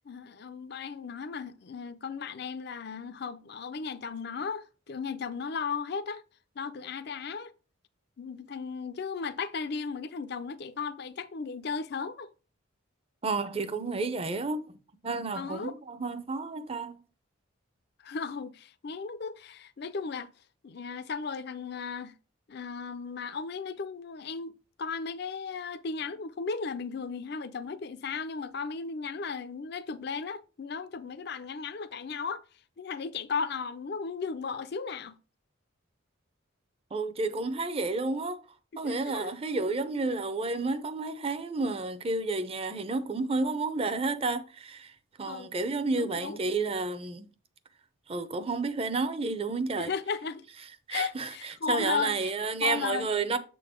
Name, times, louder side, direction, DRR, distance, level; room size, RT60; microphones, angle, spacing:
voice 1, 0.0-6.2 6.6-7.5 8.2-12.3 15.3-15.7 18.0-20.3 20.6-22.1 22.5-32.4 32.8-35.2 38.7-39.4 45.2-45.5 46.0-46.4 49.8-50.5 50.9-52.3 52.6-53.1, left 5 dB, 55° left, 0.5 m, -35 dB
voice 2, 13.2-14.8 15.0-17.0 36.9-38.4 38.8-44.9 45.2-47.3 48.1-49.9 50.9-53.4, right 3 dB, 30° right, 0.6 m, -31 dB
7.4 x 3.8 x 5.0 m
head